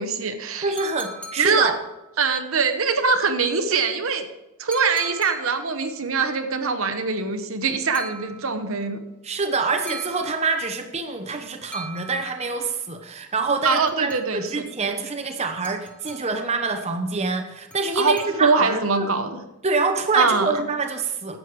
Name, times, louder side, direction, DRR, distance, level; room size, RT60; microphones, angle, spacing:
voice 1, 0.0-0.7 1.4-1.7 2.2-4.2 4.6-9.0 13.6-14.5 18.0-19.4 20.1-20.5, right 4 dB, 65° right, 7 dB, 1.0 m, -23 dB
voice 2, 0.6-1.7 9.2-19.1 19.6-21.4, right 4 dB, 30° right, 5 dB, 0.8 m, -26 dB
sound 1, 0.8-2.3 4.7-5.9 7.9-8.8 9.9-10.9 11.7-12.7 13.6-14.6 15.6-16.6 17.7-18.8, right 2 dB, 5° left, 0.9 m, -41 dB
11.0 x 7.8 x 4.7 m, 0.96 s
head